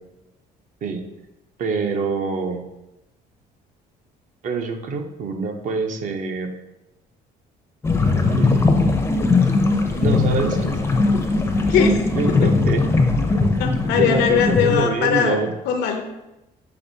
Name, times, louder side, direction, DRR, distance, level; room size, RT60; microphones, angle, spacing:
voice 1, 1.6-2.6 4.4-6.5 8.3-8.7 10.0-10.8 11.8-12.8 13.3-13.7 14.0-15.5, right 4 dB, 50° right, 5 dB, 0.6 m, -25 dB
sound 1, 7.8-14.8, left 3 dB, 15° left, 0.4 m, -19 dB
voice 2, 13.6-15.4 15.7-16.0, left 8 dB, 80° left, 5 dB, 0.5 m, -20 dB
5.9 x 2.9 x 2.7 m, 0.95 s
cardioid pair, 110°, 17 cm